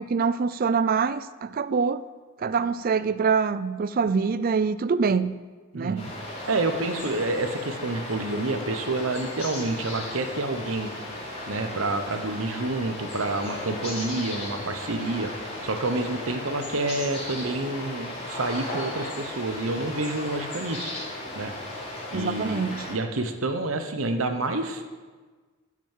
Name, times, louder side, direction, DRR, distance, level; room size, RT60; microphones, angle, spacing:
voice 1, 0.0-2.1 2.4-5.3 5.7-6.0 22.1-22.9, right 5 dB, 45° right, 0.4 m, -25 dB
voice 2, 5.7-6.1 6.5-10.9 11.5-15.3 15.6-20.9 21.3-21.5 22.1-24.9, right 2 dB, 75° right, 0.9 m, -28 dB
sound 1, 6.0-22.9, left 1 dB, 30° left, 3.2 m, -36 dB
10.5 x 6.0 x 7.4 m
head